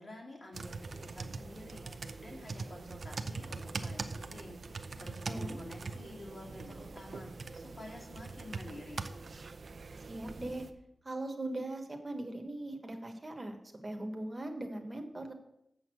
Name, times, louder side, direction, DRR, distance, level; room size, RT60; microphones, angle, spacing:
voice 1, 0.0-9.1, left 1 dB, 45° left, -1 dB, 2.6 m, -49 dB
sound 1, 0.5-10.7, right 3 dB, 55° right, 0.6 m, -42 dB
voice 2, 10.1-10.6 11.0-13.6 13.8-15.3, right 1 dB, 25° right, 4 dB, 1.2 m, -39 dB
7.1 x 6.4 x 7.6 m, 0.82 s
wide cardioid pair, 135°, 0 cm